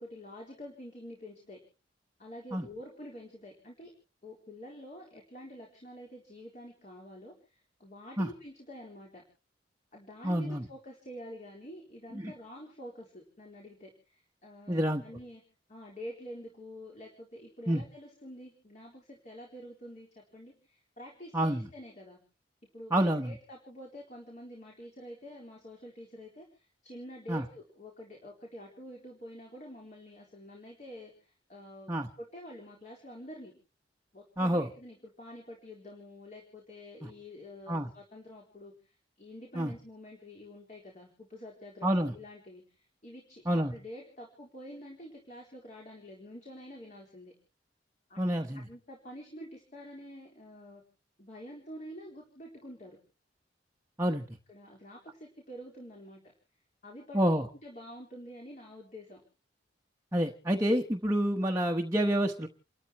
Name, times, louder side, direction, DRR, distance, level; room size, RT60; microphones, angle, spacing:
voice 1, 0.0-1.6 2.2-3.9 4.2-9.2 9.9-15.4 15.7-22.2 22.7-31.9 32.2-33.5 34.1-47.3 48.1-48.2 48.5-50.8 51.2-53.0 54.5-56.2 56.8-57.2 57.6-59.2, equal, 40° left, -1 dB, 4.0 m, -47 dB
voice 2, 10.2-10.6 12.1-12.3 14.7-15.0 17.7-17.8 21.3-21.7 22.9-23.3 27.3-27.5 31.9-32.1 34.4-34.7 37.0-37.1 37.7-37.9 39.5-39.7 41.8-42.1 43.5-43.7 48.2-48.7 54.0-54.2 57.1-57.5 60.1-62.5, right 1 dB, 15° right, 2 dB, 1.1 m, -28 dB
30.0 x 13.5 x 3.0 m, 0.36 s
head